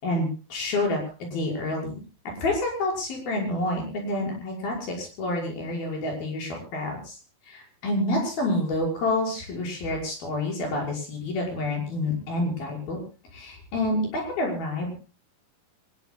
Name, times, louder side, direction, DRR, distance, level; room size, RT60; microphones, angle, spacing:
voice 1, 0.0-2.0 2.4-7.2 7.5-13.0 13.3-14.9, left 2 dB, 85° left, 0 dB, 7.7 m, -28 dB
24.5 x 21.0 x 2.3 m, 0.36 s
omnidirectional pair, 4.2 m